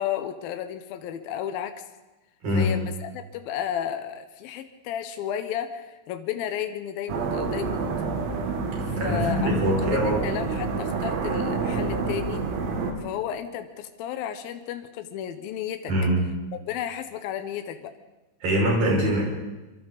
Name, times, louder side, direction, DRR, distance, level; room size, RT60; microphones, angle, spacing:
voice 1, 0.0-1.7 2.5-7.9 8.9-9.5 9.8-12.5 13.0-15.9 16.5-17.9, left 10 dB, 90° left, 8 dB, 2.1 m, -33 dB
sound 1, 7.1-12.9, right 4 dB, 80° right, 4.8 m, -28 dB
voice 2, 9.0-10.2 15.9-16.2 18.4-19.2, equal, 45° right, -3 dB, 7.6 m, -23 dB
26.5 x 24.5 x 4.1 m, 1.1 s
omnidirectional pair, 5.9 m